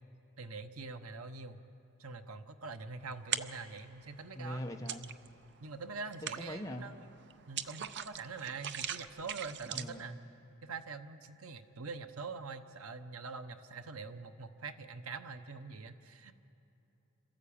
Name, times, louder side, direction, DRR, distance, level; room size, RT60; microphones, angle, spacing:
voice 1, 0.4-1.6 2.0-4.6 5.6-7.1 7.5-10.2 10.6-16.3, right 4 dB, 85° right, 9 dB, 1.0 m, -44 dB
sound 1, 3.1-3.8 4.2-5.5 5.8-10.1, right 9 dB, 55° right, 0.6 m, -40 dB
voice 2, 4.3-5.1 6.2-6.9 9.7-10.2, equal, 15° left, 2 dB, 1.0 m, -42 dB
27.5 x 13.5 x 8.7 m, 2.9 s
head